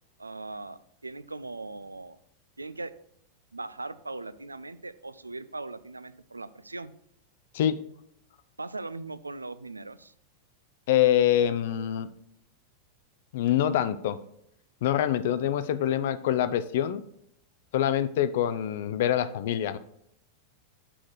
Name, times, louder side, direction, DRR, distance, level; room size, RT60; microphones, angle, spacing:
voice 1, 0.2-2.2 2.6-2.9 3.5-6.9 8.6-10.1, right 3 dB, 80° right, 15 dB, 0.4 m, -39 dB
voice 2, 10.9-12.1 13.3-14.2 14.8-17.0 17.7-19.8, left 11 dB, 55° left, 13 dB, 0.4 m, -25 dB
6.2 x 4.9 x 6.3 m, 0.72 s
figure-of-eight pair, 90°, 0 cm